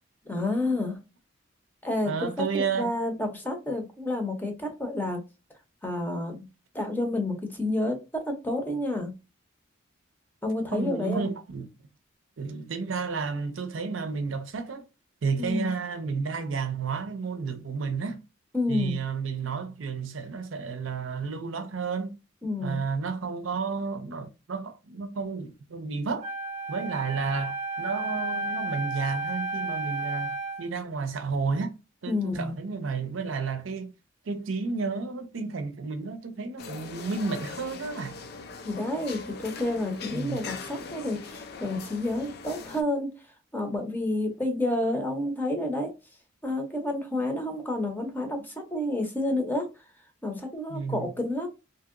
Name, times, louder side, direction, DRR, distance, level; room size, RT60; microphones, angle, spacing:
voice 1, 0.2-1.0 1.8-2.3 2.5-5.2 5.8-6.5 6.7-9.1 10.4-11.2 15.4-15.7 18.5-19.0 22.4-22.8 32.1-32.5 38.6-43.1 43.5-45.9 46.4-49.7 50.2-51.5, left 1 dB, 10° left, 0.7 m, -29 dB
voice 2, 2.0-2.9 10.7-11.7 12.4-14.8 15.2-18.2 18.7-22.2 22.6-26.3 26.7-31.7 32.0-33.9 34.3-38.2 40.1-40.4 50.7-51.1, right 4 dB, 70° right, 0.5 m, -31 dB
Wind instrument woodwind instrument, 26.2-30.7, right 2 dB, 35° right, 0.8 m, -32 dB
sound 1, 36.6-42.8, left 4 dB, 55° left, 0.4 m, -41 dB
2.9 x 2.7 x 2.5 m
head